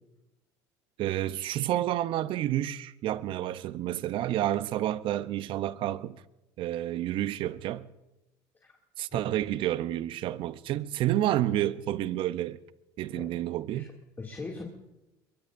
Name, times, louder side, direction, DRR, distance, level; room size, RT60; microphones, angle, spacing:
voice 1, 1.0-6.2 6.6-7.9 9.0-12.6 13.0-13.9, right 13 dB, 60° right, 0.7 m, -30 dB
voice 2, 13.7-14.6, left 3 dB, 20° left, 2.4 m, -41 dB
23.5 x 22.5 x 2.6 m
supercardioid pair, 100°, 10 cm